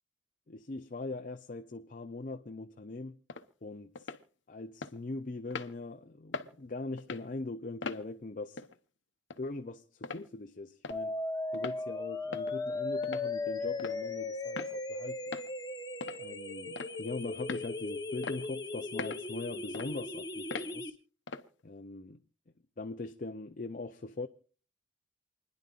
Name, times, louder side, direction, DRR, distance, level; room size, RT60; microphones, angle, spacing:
voice 1, 0.5-3.2 3.6-3.9 4.5-8.7 9.4-11.1 11.5-15.3 16.2-21.0 21.6-22.2 22.8-24.3, left 2 dB, 45° left, 0.6 m, -41 dB
sound 1, 3.3-3.5 4.0-4.2 4.8-4.9 5.5-5.7 6.3-6.5 7.0-7.3 7.8-8.0 8.6-8.7 9.3-9.4 10.0-10.2 10.8-11.0 11.5-11.8 12.3-12.6 13.0-13.3 13.8-14.0 14.6-14.7 15.3-15.5 16.0-16.2 16.8-17.0 17.5-17.7 18.2-18.4 19.0-19.2 19.7-19.9 20.5-20.7 21.3-21.5, left 4 dB, 75° left, 0.9 m, -40 dB
sound 2, 10.9-20.9, left 3 dB, 20° left, 1.0 m, -37 dB
28.5 x 10.5 x 2.5 m
head